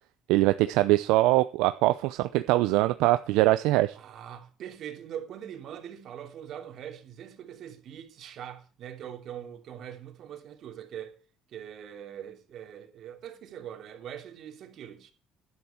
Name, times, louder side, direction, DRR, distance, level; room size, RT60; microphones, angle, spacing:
voice 1, 0.3-4.0, right 17 dB, 85° right, 0.6 m, -23 dB
voice 2, 4.0-11.2 11.5-15.1, right 9 dB, 65° right, 2.9 m, -42 dB
12.0 x 10.5 x 4.5 m
supercardioid pair, 85°, 0 cm